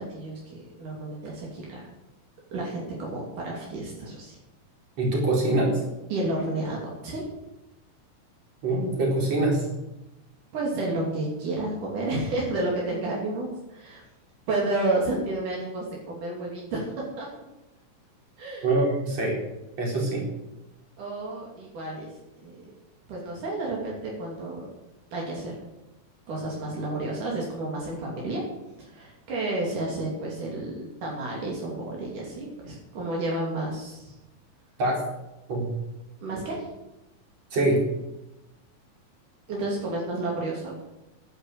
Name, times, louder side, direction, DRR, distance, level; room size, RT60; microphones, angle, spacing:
voice 1, 0.0-1.9 2.5-4.4 6.1-7.2 10.5-14.0 14.5-16.9 17.2-17.3 18.4-18.7 21.0-22.1 22.4-22.7 23.1-24.7 25.1-25.5 26.3-28.5 28.8-34.1 36.2-36.7 39.5-40.8, right 2 dB, 80° right, -3 dB, 4.5 m, -31 dB
voice 2, 5.0-5.8 8.6-9.7 18.6-19.4 19.8-20.3 34.8-35.0 35.5-35.7 37.5-37.8, right 2 dB, 55° right, -2 dB, 5.4 m, -24 dB
12.0 x 10.5 x 7.7 m, 0.96 s
omnidirectional pair, 3.6 m